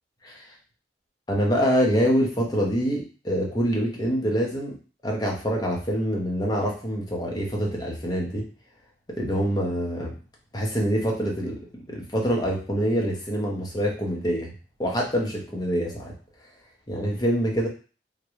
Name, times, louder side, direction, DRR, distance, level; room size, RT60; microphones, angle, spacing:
voice 1, 1.3-4.8 5.0-8.5 9.2-10.1 10.5-11.6 11.9-14.5 14.8-16.1 16.9-17.7, equal, 20° left, -1 dB, 0.7 m, -25 dB
3.6 x 2.2 x 3.1 m, 0.37 s
head